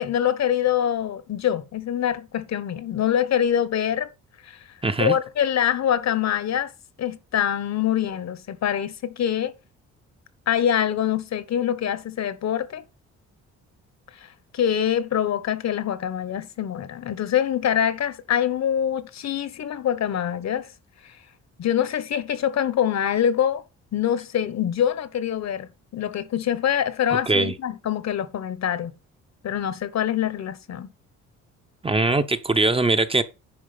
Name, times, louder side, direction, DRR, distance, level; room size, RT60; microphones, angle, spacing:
voice 1, 0.0-4.1 4.4-4.6 5.0-6.7 7.0-9.5 10.5-12.8 14.5-20.7 21.0-21.1 21.6-23.6 23.9-28.9 29.4-30.9, left 9 dB, 60° left, 1.3 m, -24 dB
voice 2, 4.8-5.1 27.3-27.5 31.8-33.2, right 2 dB, 20° right, 0.9 m, -21 dB
10.5 x 4.9 x 5.2 m
cardioid pair, 90°, 30 cm